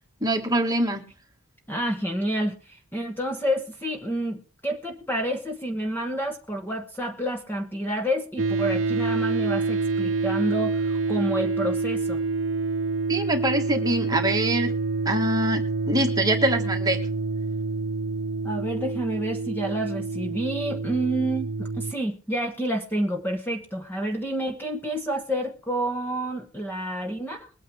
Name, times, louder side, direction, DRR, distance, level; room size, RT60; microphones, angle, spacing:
voice 1, 0.2-1.0 13.1-14.7 15.1-17.0, right 1 dB, 15° right, 3 dB, 1.6 m, -24 dB
voice 2, 1.7-12.2 18.4-27.5, right 1 dB, 10° left, 3 dB, 1.1 m, -29 dB
sound 1, 8.4-21.9, right 3 dB, 55° right, 0.8 m, -27 dB
21.5 x 9.2 x 3.3 m, 0.35 s
head